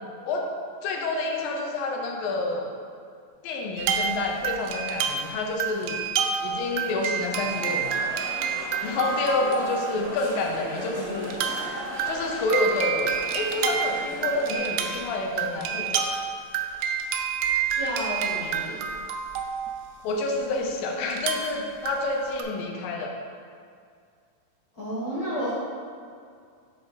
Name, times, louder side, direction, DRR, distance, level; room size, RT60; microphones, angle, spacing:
voice 1, 0.8-2.7 3.4-6.0 6.4-8.0 8.8-11.4 12.1-16.0 20.0-23.1, left 2 dB, 85° left, 1 dB, 2.4 m, -28 dB
sound 1, 3.8-10.1 10.6-10.7 11.2-20.4 21.1-22.4, right 7 dB, 80° right, 2.0 m, -29 dB
sound 2, 7.3-14.6, equal, 50° right, 1.0 m, -38 dB
voice 2, 17.8-18.8 24.7-25.5, equal, 40° left, -11 dB, 1.4 m, -31 dB
5.8 x 5.0 x 4.0 m, 2.2 s
omnidirectional pair, 4.0 m